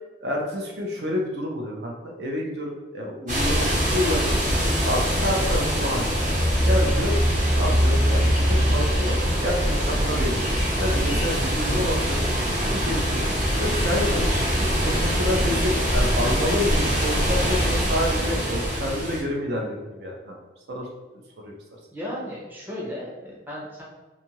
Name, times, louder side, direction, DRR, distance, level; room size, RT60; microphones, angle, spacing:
voice 1, 0.2-4.4 4.8-6.3 6.6-7.2 7.5-13.2 13.6-14.2 14.8-20.4 20.7-20.9 21.4-21.5, left 1 dB, 60° right, -1 dB, 0.5 m, -29 dB
sound 1, 3.3-19.2, equal, 40° right, 0.9 m, -23 dB
voice 2, 21.9-23.8, equal, 10° right, -6 dB, 0.6 m, -35 dB
2.6 x 2.4 x 2.9 m, 1.1 s
head